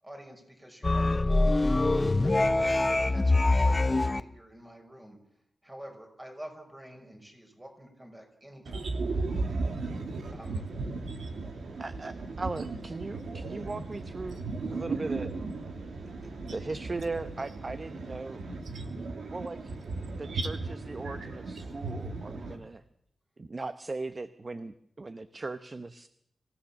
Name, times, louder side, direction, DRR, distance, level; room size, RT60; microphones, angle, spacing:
voice 1, 0.0-5.2 5.6-8.8 10.3-10.7, equal, 15° right, 3 dB, 5.8 m, -48 dB
sound 1, 0.8-4.2, left 2 dB, 25° left, 0.8 m, -24 dB
voice 2, 8.6-22.6, right 3 dB, 80° right, 5 dB, 2.7 m, -36 dB
voice 3, 11.8-14.4 14.7-15.3 16.2-18.4 19.3-19.6 20.2-20.6 20.9-22.8 23.4-26.1, right 3 dB, 35° right, 12 dB, 0.9 m, -38 dB
25.5 x 16.5 x 7.3 m, 0.74 s
wide cardioid pair, 105°, 0 cm